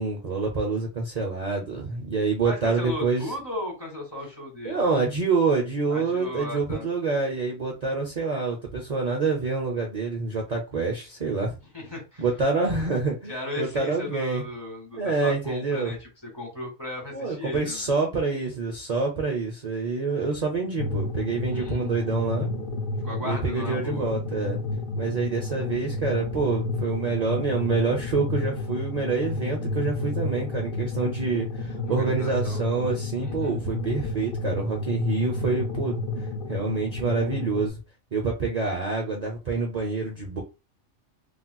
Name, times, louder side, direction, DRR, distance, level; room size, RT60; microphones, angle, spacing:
voice 1, 0.0-3.3 4.6-11.6 12.2-14.4 15.0-15.9 17.1-22.5 23.2-24.6 24.9-36.0 36.5-37.8 38.1-40.4, right 4 dB, 40° right, -1 dB, 0.6 m, -27 dB
voice 2, 2.4-4.9 5.9-6.8 11.7-12.2 13.3-16.1 16.3-17.9 21.5-21.9 23.0-24.1 31.9-32.6 33.2-33.6, left 1 dB, 20° left, 0 dB, 1.1 m, -36 dB
sound 1, 20.8-37.7, left 3 dB, 50° left, 0.8 m, -31 dB
3.2 x 2.8 x 2.2 m, 0.28 s
omnidirectional pair, 1.3 m